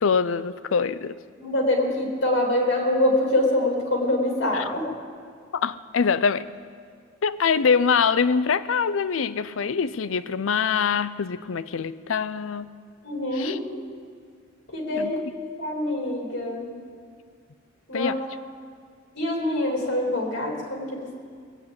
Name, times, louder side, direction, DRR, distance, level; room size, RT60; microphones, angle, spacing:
voice 1, 0.0-1.2 4.5-4.7 5.5-6.5 7.2-12.7 13.3-13.6 15.0-15.1 17.9-18.2, left 6 dB, 80° left, 15 dB, 0.5 m, -24 dB
voice 2, 1.4-4.9 13.0-13.6 14.7-16.8 17.9-18.1 19.1-21.2, left 1 dB, 60° left, 0 dB, 3.2 m, -25 dB
20.0 x 8.1 x 8.7 m, 2.1 s
head